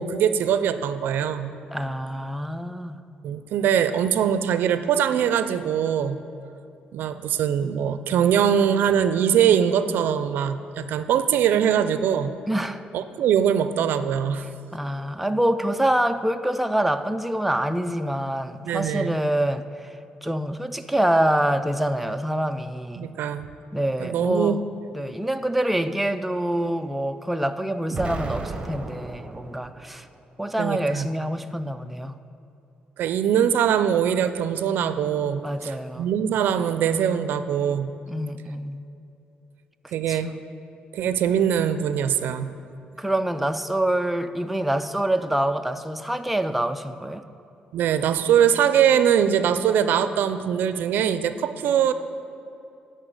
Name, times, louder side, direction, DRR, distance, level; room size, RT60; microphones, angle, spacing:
voice 1, 0.0-1.6 3.2-6.2 6.9-12.3 12.9-14.4 18.7-19.2 23.0-23.5 24.0-24.6 30.6-31.1 33.0-37.9 39.9-40.3 40.9-42.5 47.7-51.9, right 8 dB, 80° right, 11 dB, 0.4 m, -22 dB
voice 2, 1.7-3.0 12.5-12.8 14.7-20.0 20.2-23.1 23.7-24.6 24.9-30.1 30.4-32.2 35.4-36.1 38.1-38.8 40.1-40.4 43.0-47.2, right 1 dB, 5° right, 9 dB, 0.4 m, -26 dB
Explosion, 27.9-30.0, right 3 dB, 30° right, 0.9 m, -34 dB
11.0 x 4.5 x 8.0 m, 2.7 s
cardioid pair, 95°, 3 cm